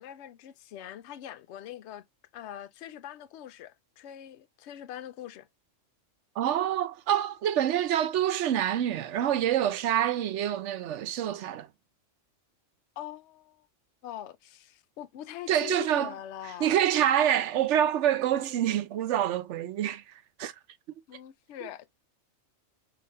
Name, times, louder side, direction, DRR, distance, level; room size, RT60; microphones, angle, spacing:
voice 1, 0.0-2.0 2.3-5.5 13.0-13.7 14.0-16.7 21.1-21.9, left 12 dB, 70° left, 0.8 m, -43 dB
voice 2, 6.4-11.7 15.5-16.1 16.6-20.0 20.4-20.5, right 10 dB, 70° right, 0.9 m, -26 dB
4.7 x 3.4 x 2.6 m
omnidirectional pair, 1.3 m